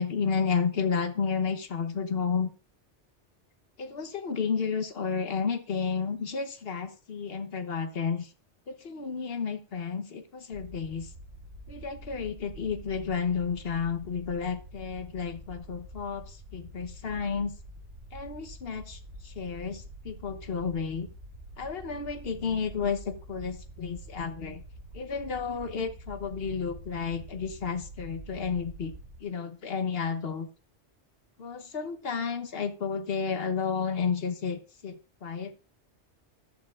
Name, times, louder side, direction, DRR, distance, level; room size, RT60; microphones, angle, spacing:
voice 1, 0.0-2.5 3.8-8.3 8.7-11.1 11.7-17.5 18.1-21.1 21.6-24.6 24.9-28.9 29.2-30.5 31.4-35.5, left 6 dB, 55° left, 8 dB, 1.2 m, -32 dB
sound 1, 10.5-29.2, equal, 80° right, 2.6 m, -46 dB
14.0 x 11.0 x 2.4 m, 0.34 s
omnidirectional pair, 1.2 m